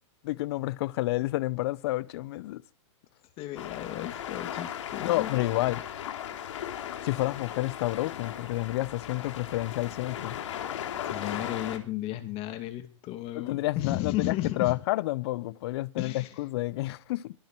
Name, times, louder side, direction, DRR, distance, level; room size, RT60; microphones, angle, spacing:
voice 1, 0.2-2.6 5.0-5.8 7.0-10.4 13.3-17.3, left 18 dB, 55° left, 0.8 m, -30 dB
voice 2, 3.4-5.3 11.0-14.7 16.0-16.3, left 14 dB, 35° left, 2.4 m, -34 dB
sound 1, 3.6-11.8, left 10 dB, 70° left, 3.2 m, -37 dB
23.5 x 9.3 x 4.5 m
hypercardioid pair, 125°, 16 cm